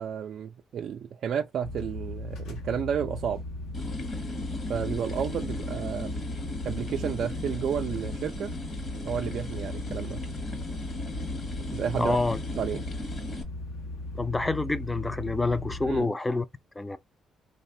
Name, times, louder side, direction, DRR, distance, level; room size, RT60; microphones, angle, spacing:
voice 1, 0.0-3.4 4.7-6.1 6.6-8.5 9.0-10.2 11.7-12.2 12.6-12.8 15.8-16.1, right 8 dB, 65° right, 0.3 m, -31 dB
sound 1, 1.6-16.0, left 1 dB, 85° left, 0.7 m, -38 dB
sound 2, 3.7-13.4, left 2 dB, 50° left, 1.0 m, -37 dB
voice 2, 12.0-12.4 14.2-16.5 16.8-17.0, left 3 dB, 15° left, 0.4 m, -27 dB
3.1 x 2.1 x 2.6 m
cardioid pair, 90°, 0 cm